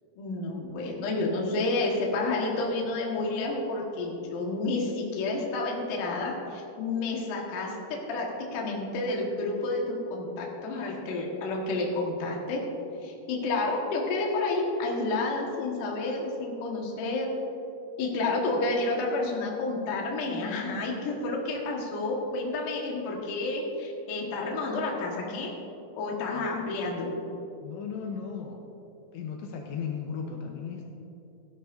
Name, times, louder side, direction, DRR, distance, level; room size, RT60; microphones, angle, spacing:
voice 1, 0.2-12.6 13.0-17.3 18.0-25.5 25.9-27.2, left 2 dB, 60° left, -1 dB, 2.5 m, -30 dB
voice 2, 27.6-28.6 29.1-30.8, left 6 dB, 80° left, 1 dB, 3.0 m, -36 dB
17.5 x 11.0 x 2.6 m, 2.8 s
omnidirectional pair, 5.4 m